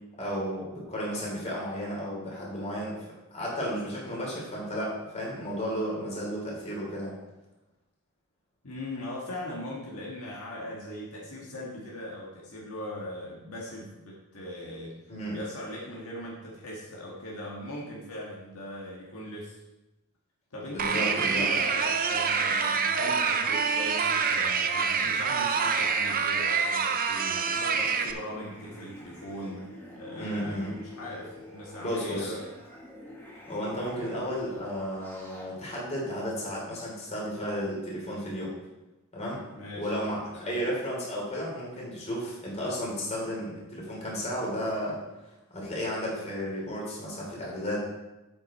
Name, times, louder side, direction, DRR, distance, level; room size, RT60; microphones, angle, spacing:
voice 1, 0.2-3.0 3.3-7.1 15.1-15.4 20.7-21.5 30.1-30.7 31.8-32.3 33.5-38.5 39.1-39.4 39.7-45.0 45.5-47.8, equal, 30° left, -4 dB, 3.4 m, -33 dB
voice 2, 8.6-14.9 15.3-19.6 20.5-29.6 30.0-32.5 39.5-39.9 40.3-40.7, left 1 dB, 75° left, -5 dB, 1.9 m, -40 dB
sound 1, 20.8-28.1, right 5 dB, 40° right, 0.7 m, -26 dB
sound 2, 28.3-35.5, left 1 dB, 10° left, 2.0 m, -47 dB
8.3 x 8.1 x 4.3 m, 1.0 s
head